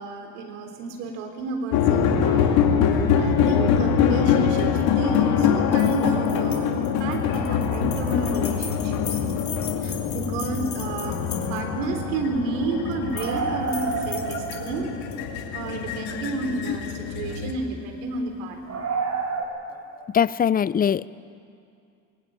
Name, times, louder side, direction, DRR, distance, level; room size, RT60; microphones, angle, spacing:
voice 1, 0.0-2.5 3.1-9.5 9.8-14.9 15.5-18.9, right 3 dB, 75° right, 5 dB, 3.6 m, -31 dB
sound 1, 1.7-17.5, left 8 dB, 65° left, 2.5 m, -24 dB
sound 2, 5.7-11.8 12.9-13.4 13.7-15.2, left 7 dB, 45° left, 3.5 m, -39 dB
sound 3, 10.4-10.5 10.9-11.0 11.2-11.3 13.1-15.1 15.7-15.8 17.2-17.4 18.7-19.4, right 5 dB, 45° right, 4.9 m, -29 dB
voice 2, 20.1-21.1, left 8 dB, 25° left, 20 dB, 0.6 m, -21 dB
20.5 x 19.0 x 8.9 m, 2.4 s
hypercardioid pair, 65°, 39 cm